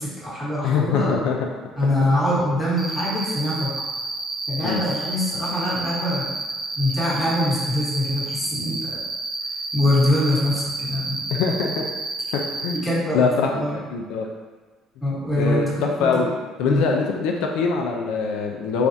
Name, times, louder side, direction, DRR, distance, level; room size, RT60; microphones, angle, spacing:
voice 1, 0.0-1.2 1.8-3.7 4.5-6.3 6.8-9.0 9.7-11.4 12.8-13.8 15.0-16.3 16.6-16.8, left 1 dB, 15° left, -7 dB, 1.1 m, -23 dB
voice 2, 0.6-1.4 4.6-4.8 11.3-11.8 12.3-12.8 13.1-14.3 15.3-16.3 16.6-18.9, left 5 dB, 85° left, 1 dB, 0.3 m, -23 dB
Cricket, 2.8-12.8, right 2 dB, 30° right, 0.4 m, -30 dB
3.2 x 2.3 x 2.6 m, 1.4 s
cardioid pair, 115°, 0 cm